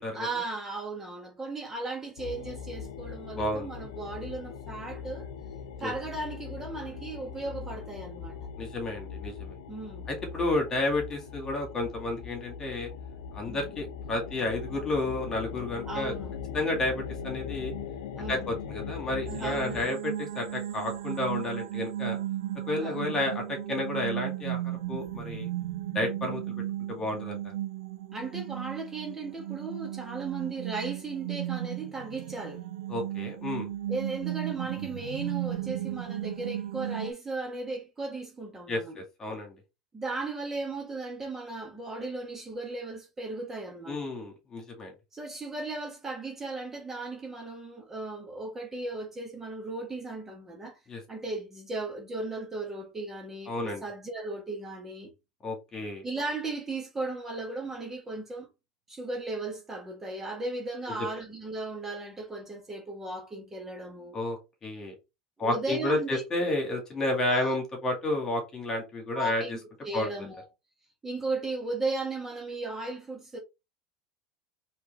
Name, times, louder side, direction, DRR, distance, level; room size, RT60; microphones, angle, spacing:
voice 1, 0.1-5.3 5.8-8.4 9.7-10.1 13.5-13.7 15.9-16.4 18.1-18.5 19.4-19.9 22.8-23.0 28.1-32.6 33.9-39.0 39.9-44.1 45.1-50.8 51.1-55.1 56.0-58.5 58.9-64.2 65.4-66.2 67.3-67.5 69.1-69.5 69.8-70.4 71.0-73.4, right 3 dB, 15° right, 1.3 m, -36 dB
sound 1, 2.2-19.8, left 6 dB, 90° left, 0.7 m, -40 dB
voice 2, 3.4-3.7 5.8-5.9 8.6-9.5 10.1-12.9 13.3-16.1 16.5-17.7 18.3-22.2 22.7-24.6 24.9-25.5 25.9-26.4 26.9-27.5 32.9-33.7 38.7-39.5 43.9-44.9 50.9-51.0 53.5-53.8 55.4-56.0 64.1-64.9 65.4-69.4 69.9-70.1, left 2 dB, 25° left, 2.1 m, -31 dB
sound 2, 19.3-37.1, right 13 dB, 90° right, 0.4 m, -35 dB
4.5 x 3.3 x 3.4 m
supercardioid pair, 115°, 2 cm